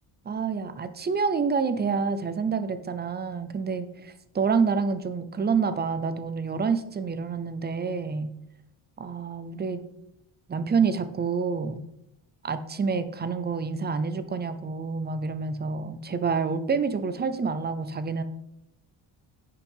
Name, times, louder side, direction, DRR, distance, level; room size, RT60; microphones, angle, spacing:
voice 1, 0.3-8.3 9.0-9.8 10.5-11.8 12.4-18.2, right 5 dB, 20° right, 12 dB, 0.5 m, -28 dB
10.0 x 5.6 x 5.5 m, 0.80 s
cardioid pair, 175°, 49 cm